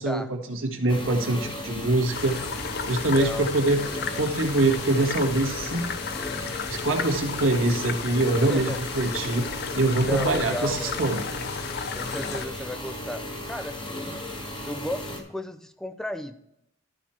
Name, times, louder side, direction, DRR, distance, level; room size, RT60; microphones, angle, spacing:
voice 1, 0.0-2.4 2.9-3.8 4.1-5.9 6.7-9.5 9.7-11.2, right 2 dB, 80° right, 2 dB, 1.7 m, -24 dB
sound 1, 0.9-15.2, left 1 dB, 25° left, 1.5 m, -36 dB
sound 2, 2.1-12.5, left 6 dB, 55° left, 0.5 m, -34 dB
voice 2, 2.9-3.5 8.4-8.8 10.0-11.0 11.9-14.4 14.6-16.4, left 1 dB, 5° left, 9 dB, 0.6 m, -34 dB
12.5 x 5.3 x 4.3 m, 0.79 s
head